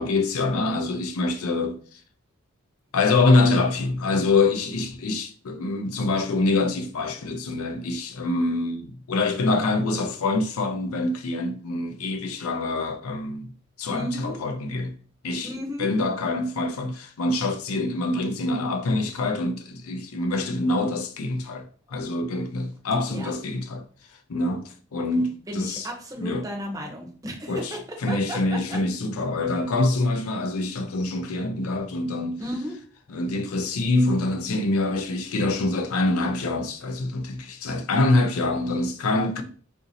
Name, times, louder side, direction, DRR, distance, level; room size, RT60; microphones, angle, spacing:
voice 1, 0.0-2.0 2.9-13.5 13.8-14.9 15.2-15.5 15.8-23.8 24.3-25.9 26.2-26.5 27.5-32.4 33.1-39.4, left 2 dB, 85° left, 0.5 m, -25 dB
voice 2, 13.9-14.4 15.4-15.9 23.1-23.3 25.5-28.8 32.4-32.7, equal, 15° right, 0.7 m, -34 dB
3.9 x 2.6 x 2.7 m
head